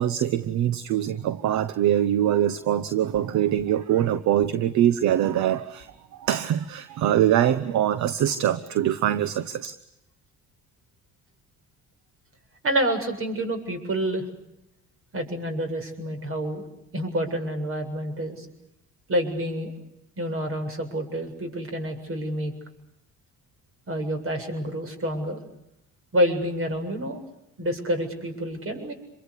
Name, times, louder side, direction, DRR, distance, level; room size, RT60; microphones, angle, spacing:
voice 1, 0.0-9.7, right 11 dB, 70° right, 13 dB, 1.1 m, -23 dB
voice 2, 12.6-14.2 15.1-16.6 16.9-18.5 19.1-19.7 20.2-22.5 23.9-25.4 26.1-27.2 27.6-28.9, equal, 45° right, 6 dB, 7.5 m, -28 dB
27.5 x 23.5 x 8.3 m, 0.87 s
supercardioid pair, 75°, 30 cm